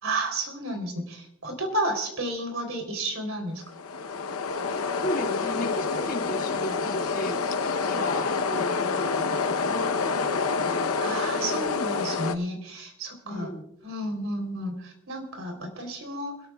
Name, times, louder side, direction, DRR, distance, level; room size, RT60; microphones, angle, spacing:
voice 1, 0.0-3.6 11.0-13.5 13.8-16.3, right 1 dB, 65° right, 5 dB, 3.5 m, -32 dB
sound 1, 3.7-12.4, left 4 dB, 85° left, 0.8 m, -27 dB
voice 2, 5.0-7.4 7.7-11.0 13.3-13.6, equal, 40° left, 2 dB, 1.9 m, -35 dB
28.0 x 13.5 x 2.3 m, 0.78 s
head